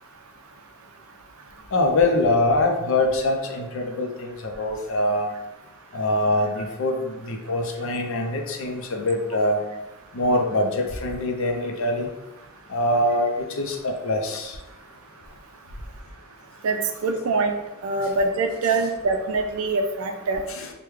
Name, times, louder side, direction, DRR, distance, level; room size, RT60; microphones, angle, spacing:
voice 1, 1.7-5.3 5.9-9.6 10.1-12.1 12.7-14.6 20.5-20.7, left 1 dB, 65° left, 3 dB, 0.5 m, -24 dB
voice 2, 16.6-17.5 17.8-20.4, right 3 dB, 75° right, 5 dB, 0.4 m, -24 dB
3.4 x 2.2 x 3.1 m, 0.97 s
head